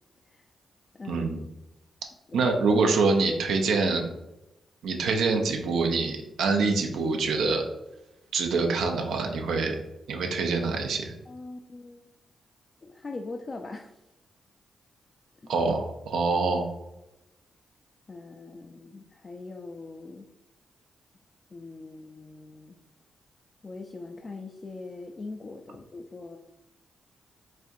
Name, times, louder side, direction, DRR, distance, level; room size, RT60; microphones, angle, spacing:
voice 1, 1.1-1.4 2.3-4.1 4.8-7.7 8.3-9.8 10.1-11.1 15.5-16.7, right 4 dB, 80° right, 3 dB, 0.5 m, -25 dB
voice 2, 11.3-12.0 12.8-13.9 15.4-15.5 18.1-20.3 21.5-22.8 23.6-26.4, left 3 dB, 45° left, 3 dB, 0.3 m, -41 dB
4.1 x 2.4 x 2.6 m, 0.95 s
supercardioid pair, 50°, 0 cm